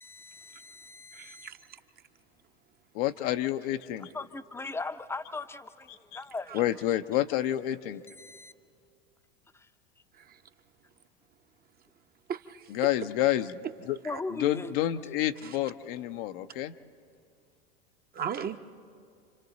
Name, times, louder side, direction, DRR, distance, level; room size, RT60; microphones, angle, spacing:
voice 1, 0.0-1.5 4.1-6.6 8.2-8.5 9.5-9.7 14.0-14.7, left 3 dB, 10° left, 11 dB, 0.7 m, -39 dB
voice 2, 1.1-1.8 6.5-6.7 10.2-10.4 12.3-12.7 14.0-14.2 15.4-15.6 18.1-18.6, right 8 dB, 30° right, 7 dB, 0.9 m, -38 dB
voice 3, 2.9-4.1 6.5-8.0 12.7-14.0 14.4-16.7, left 13 dB, 60° left, 9 dB, 0.8 m, -29 dB
29.5 x 25.5 x 4.0 m, 2.3 s
hypercardioid pair, 90°, 31 cm